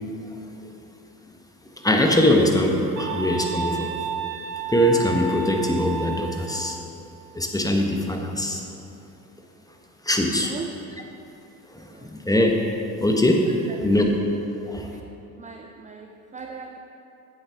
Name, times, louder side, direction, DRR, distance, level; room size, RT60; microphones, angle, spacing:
voice 1, 1.8-3.9 4.7-6.8 7.3-8.6 10.0-10.5 11.7-12.6 13.0-13.5 13.8-14.0 14.7-14.9, left 1 dB, 10° left, 2 dB, 1.2 m, -22 dB
sound 1, 3.0-6.6, right 4 dB, 75° right, 0.9 m, -31 dB
voice 2, 10.3-10.7 11.9-12.1 13.5-14.1 14.9-15.0 15.4-16.8, right 5 dB, 15° right, 2 dB, 0.5 m, -39 dB
9.8 x 7.9 x 3.5 m, 2.9 s
hypercardioid pair, 60°, 44 cm